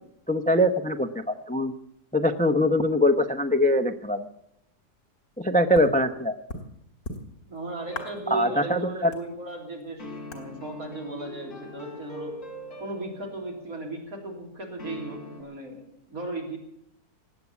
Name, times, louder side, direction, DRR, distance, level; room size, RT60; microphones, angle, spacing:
voice 1, 0.3-1.7 2.1-4.3 5.4-6.4 8.3-9.1, left 1 dB, 10° left, 8 dB, 0.4 m, -23 dB
sound 1, 5.7-5.9 6.5-6.6 7.0-7.6 7.9-8.4 8.7-8.8 9.1-9.9 10.3-10.5, left 2 dB, 65° left, 3.0 m, -37 dB
voice 2, 7.5-12.4 12.8-16.6, right 2 dB, 60° right, 0 dB, 3.8 m, -36 dB
sound 2, 7.8-9.1 10.0-13.9 14.8-15.4, left 1 dB, 50° left, 3.6 m, -42 dB
19.5 x 8.5 x 8.3 m, 0.76 s
omnidirectional pair, 1.7 m